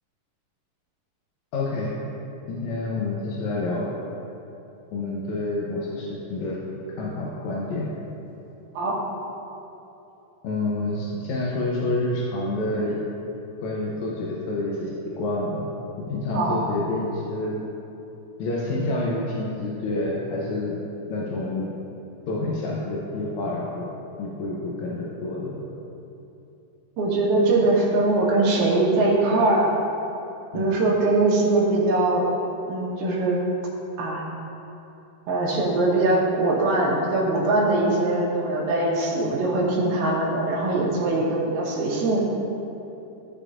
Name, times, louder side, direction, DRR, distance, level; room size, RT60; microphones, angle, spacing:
voice 1, 1.5-1.9 2.5-3.9 4.9-6.6 7.0-7.9 10.4-13.0 13.6-15.6 16.0-17.6 18.4-20.8 21.1-21.7 22.3-23.9 24.2-25.6 30.5-30.8, left 2 dB, 70° left, -5 dB, 1.8 m, -28 dB
voice 2, 27.0-29.7 30.5-32.3 32.7-33.4 34.0-34.2 35.3-42.2, right 2 dB, 90° right, -6 dB, 2.8 m, -22 dB
14.0 x 6.6 x 2.5 m, 2.9 s
omnidirectional pair, 4.1 m